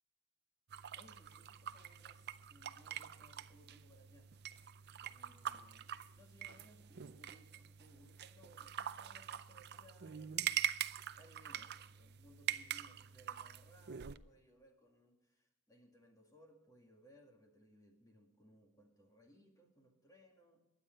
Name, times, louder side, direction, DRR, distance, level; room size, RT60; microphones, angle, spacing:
sound 1, 0.7-14.2, right 10 dB, 50° right, 0.5 m, -44 dB
voice 1, 0.9-4.3 5.1-10.5 11.1-20.7, equal, 15° left, 1 dB, 2.1 m, -65 dB
21.5 x 9.3 x 4.5 m, 0.93 s
head